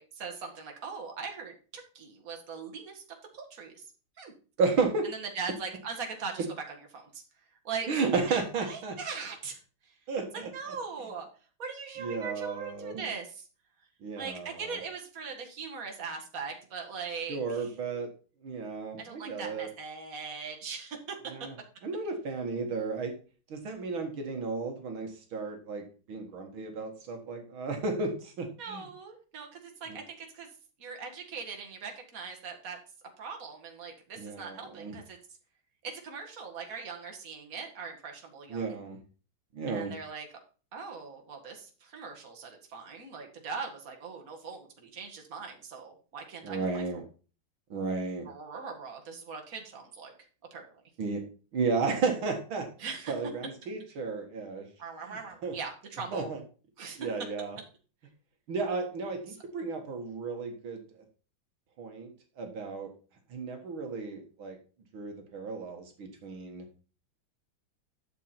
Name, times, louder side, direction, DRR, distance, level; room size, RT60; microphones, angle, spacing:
voice 1, 0.0-3.0 3.3-3.8 4.2-4.3 5.0-7.2 7.6-8.4 8.7-10.0 10.3-11.3 11.6-13.4 14.2-17.7 19.0-21.2 28.6-30.5 30.8-32.8 33.2-35.2 35.8-38.8 39.7-40.3 40.7-46.8 48.3-50.1 50.5-50.8 52.8-53.2 54.8-56.4 56.8-57.0 59.3-59.4, right 5 dB, 40° right, 2 dB, 2.3 m, -40 dB
voice 2, 4.6-5.1 7.9-9.0 10.1-10.5 12.0-13.1 14.0-14.8 17.3-18.1 18.4-19.7 21.3-21.5 21.8-23.1 23.5-28.9 29.9-30.0 34.2-35.0 38.5-39.0 39.5-39.9 46.4-47.0 47.7-48.3 51.0-51.2 51.5-52.7 53.1-54.6 55.1-55.6 56.1-56.4 57.0-57.6 58.5-60.8 61.8-62.9 63.3-64.6 64.9-66.6, right 4 dB, 75° right, 3 dB, 2.4 m, -33 dB
12.0 x 7.1 x 4.4 m, 0.38 s
omnidirectional pair, 2.3 m